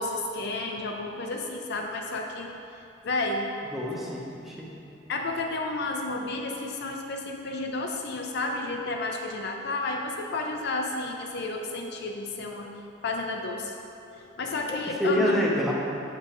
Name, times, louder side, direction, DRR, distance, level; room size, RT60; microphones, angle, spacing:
voice 1, 0.0-2.5 3.0-3.5 5.1-12.7 13.0-13.7 14.1-15.4, left 2 dB, 55° left, 2 dB, 0.5 m, -31 dB
voice 2, 3.7-4.7 14.7-15.7, left 1 dB, ahead, -4 dB, 0.7 m, -27 dB
6.8 x 6.5 x 3.0 m, 2.7 s
head